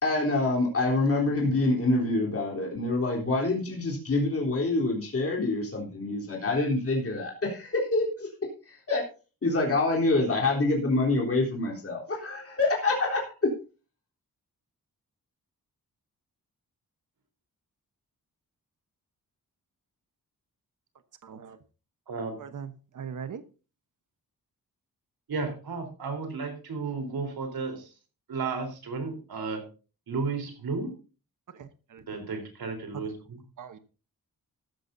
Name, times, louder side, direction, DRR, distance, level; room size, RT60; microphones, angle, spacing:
voice 1, 0.0-8.3 8.7-9.0 9.4-13.5, left 2 dB, 40° left, -2 dB, 3.7 m, -26 dB
voice 2, 21.2-21.6 22.4-23.4 31.5-32.4 32.9-33.0 33.6-33.8, right 7 dB, 60° right, 10 dB, 1.1 m, -41 dB
voice 3, 22.1-22.4 25.3-27.9 28.3-29.7 30.1-30.9 32.1-33.4, right 4 dB, 80° right, 6 dB, 4.0 m, -33 dB
14.0 x 12.5 x 2.7 m, 0.34 s
wide cardioid pair, 145°, 36 cm